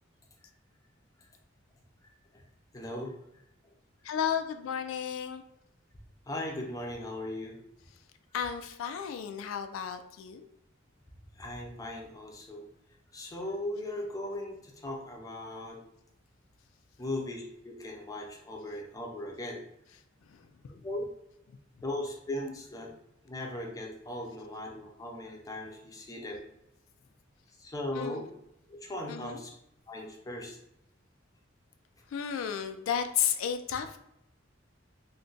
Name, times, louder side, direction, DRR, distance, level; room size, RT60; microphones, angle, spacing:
voice 1, 2.0-2.4 2.7-3.7 6.3-7.6 11.3-12.7 13.1-15.8 17.0-19.6 20.8-21.1 21.8-22.9 23.2-26.4 27.6-28.3 28.7-29.5 29.9-30.6, left 1 dB, 20° left, 0 dB, 0.5 m, -38 dB
voice 2, 4.0-5.4 8.3-10.5 27.9-28.3 29.1-29.4 32.1-34.0, left 8 dB, 85° left, 7 dB, 0.3 m, -33 dB
2.4 x 2.2 x 3.8 m, 0.81 s
head